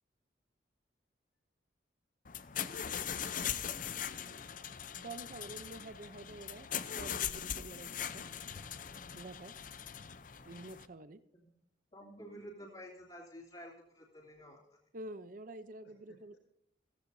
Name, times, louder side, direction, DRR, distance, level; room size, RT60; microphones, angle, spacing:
sound 1, 2.2-10.9, left 9 dB, 45° left, 0.6 m, -40 dB
voice 1, 3.5-4.8 15.8-16.4, left 1 dB, 70° left, -5 dB, 4.3 m, -64 dB
voice 2, 4.9-8.3 9.2-9.5 10.4-11.2 14.9-16.3, right 2 dB, 45° right, 12 dB, 0.6 m, -48 dB
voice 3, 11.9-14.6, equal, 30° left, -6 dB, 2.9 m, -50 dB
16.5 x 15.5 x 2.7 m, 0.77 s
head